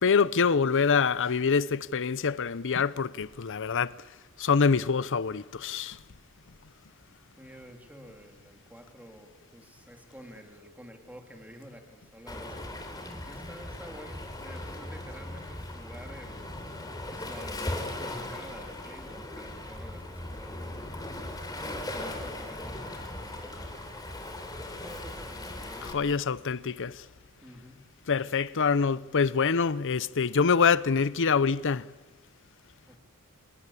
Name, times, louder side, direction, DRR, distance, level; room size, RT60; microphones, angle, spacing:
voice 1, 0.0-3.9 4.4-6.0 25.8-27.0 28.1-31.9, left 5 dB, 60° left, 0.7 m, -25 dB
voice 2, 7.4-16.6 17.1-21.0 21.5-24.0 24.7-26.3 27.4-27.8 32.9-33.0, equal, 5° right, 2.7 m, -50 dB
Waves surf, 12.3-25.9, left 1 dB, 20° left, 3.5 m, -38 dB
28.0 x 19.5 x 8.4 m
head